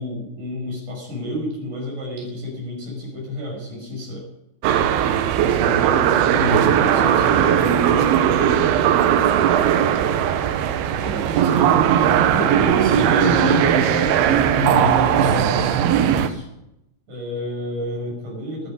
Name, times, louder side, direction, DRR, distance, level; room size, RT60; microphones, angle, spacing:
voice 1, 0.0-4.3 5.3-9.2 11.0-13.6 14.6-15.6 16.0-16.5 17.1-18.7, left 1 dB, 50° right, -1 dB, 6.8 m, -31 dB
sound 1, 4.6-16.3, right 9 dB, 80° right, 2.8 m, -18 dB
voice 2, 6.4-6.8 12.8-15.7, equal, 30° right, -3 dB, 4.7 m, -26 dB
23.5 x 8.4 x 5.5 m, 0.84 s
omnidirectional pair, 4.5 m